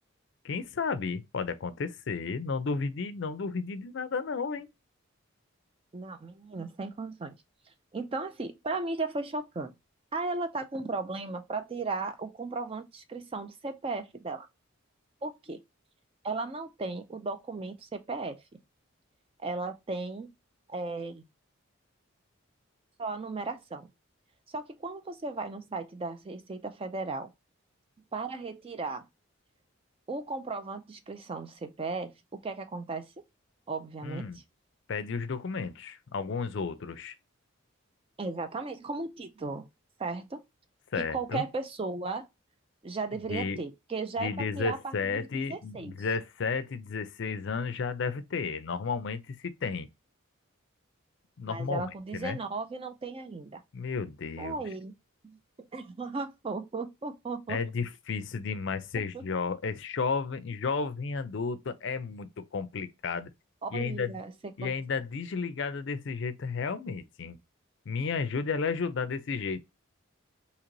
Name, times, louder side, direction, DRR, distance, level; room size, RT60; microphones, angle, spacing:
voice 1, 0.4-4.7 34.0-34.4 34.9-37.1 40.9-41.4 43.3-43.6 44.2-49.9 51.4-52.4 53.7-54.5 57.5-63.3 63.7-64.1 64.6-67.4 67.9-69.6, left 5 dB, 55° left, 0.4 m, -33 dB
voice 2, 5.9-7.4 7.9-9.7 10.1-14.5 15.2-15.6 16.2-18.6 19.4-20.3 20.7-21.3 23.0-23.9 24.5-27.3 28.1-29.1 30.1-33.2 33.7-34.4 38.2-39.7 40.0-40.4 41.0-42.3 42.8-45.9 51.5-53.6 54.4-54.9 55.2-57.6 59.1-59.2 63.6-64.7, right 3 dB, 25° right, 0.3 m, -36 dB
3.1 x 2.9 x 3.7 m
head